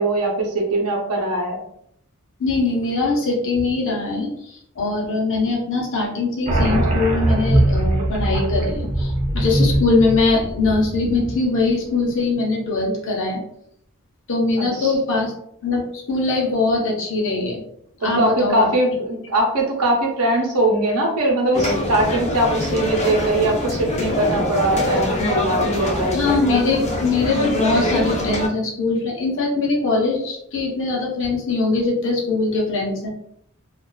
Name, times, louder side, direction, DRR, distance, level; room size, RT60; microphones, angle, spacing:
voice 1, 0.0-1.6 14.6-14.9 18.2-26.4, right 1 dB, 80° right, 0 dB, 0.7 m, -21 dB
voice 2, 2.4-13.4 14.3-15.3 15.6-17.6 18.0-18.7 26.1-33.1, left 3 dB, 60° left, -2 dB, 0.7 m, -22 dB
sound 1, 6.5-11.7, right 1 dB, 30° right, 0.5 m, -21 dB
sound 2, 21.5-28.5, left 1 dB, 30° left, 0.4 m, -23 dB
2.4 x 2.3 x 2.2 m, 0.71 s
head